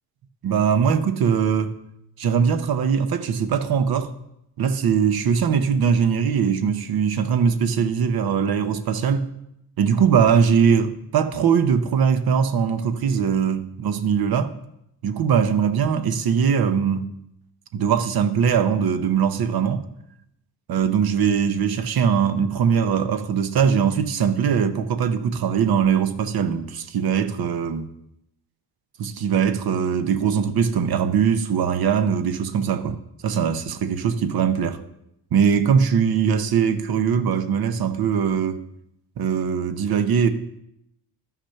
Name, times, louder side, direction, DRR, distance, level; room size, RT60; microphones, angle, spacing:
voice 1, 0.4-1.7 2.2-4.1 4.6-9.3 9.8-14.5 15.0-17.1 17.7-19.8 20.7-27.9 29.0-33.0 33.2-34.8 35.3-38.6 39.2-40.3, right 7 dB, 60° right, 0.9 m, -21 dB
12.0 x 5.9 x 5.7 m
cardioid pair, 130°, 41 cm